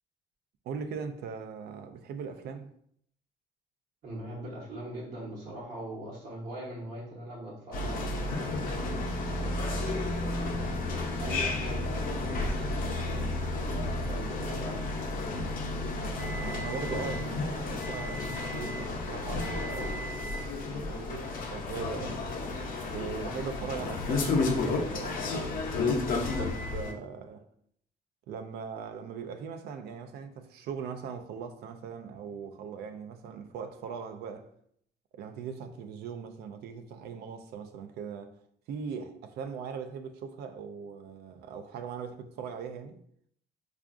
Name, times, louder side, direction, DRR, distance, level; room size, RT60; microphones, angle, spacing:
voice 1, 0.6-2.7 14.2-14.3 16.0-22.2 22.9-26.1 26.4-27.5 28.3-34.5 35.1-38.4 38.7-43.0, right 6 dB, 70° right, 0.4 m, -40 dB
voice 2, 4.0-8.6 9.3-10.5 11.2-13.3 13.9-14.8 23.2-23.3, right 1 dB, 55° right, 1.0 m, -42 dB
sound 1, 7.7-26.9, left 2 dB, 55° left, 0.7 m, -32 dB
4.6 x 2.4 x 2.4 m
cardioid pair, 110°, 17 cm